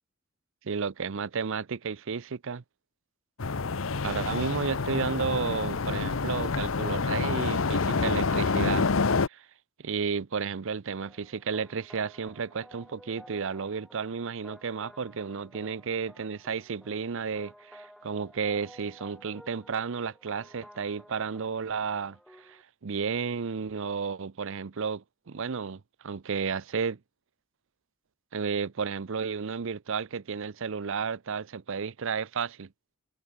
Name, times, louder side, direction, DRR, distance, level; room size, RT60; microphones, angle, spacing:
voice 1, 0.6-2.6 4.0-8.9 9.3-9.5 9.8-27.0 28.3-32.7, right 5 dB, 65° right, 0.6 m, -32 dB
sound 1, 3.4-9.3, left 4 dB, 70° left, 0.9 m, -27 dB
sound 2, 11.0-22.6, equal, ahead, 5.1 m, -54 dB
head